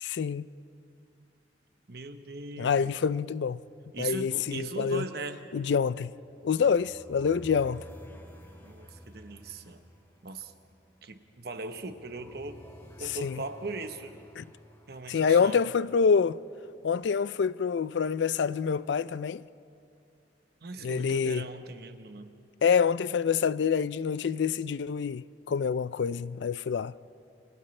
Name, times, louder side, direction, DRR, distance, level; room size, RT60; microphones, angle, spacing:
voice 1, 0.0-0.4 2.6-3.6 4.0-5.0 5.5-6.1 6.4-7.8 13.2-13.4 14.4-14.5 15.1-16.4 16.8-19.4 20.8-21.5 22.6-26.9, left 6 dB, 75° left, 0.4 m, -26 dB
voice 2, 1.9-2.9 3.9-5.4 8.6-9.8 10.2-10.5 11.0-12.6 13.0-14.2 14.9-15.7 20.6-22.3, right 3 dB, 55° right, 1.1 m, -39 dB
sound 1, 6.2-16.3, equal, 15° left, 2.5 m, -52 dB
29.5 x 26.5 x 3.3 m
head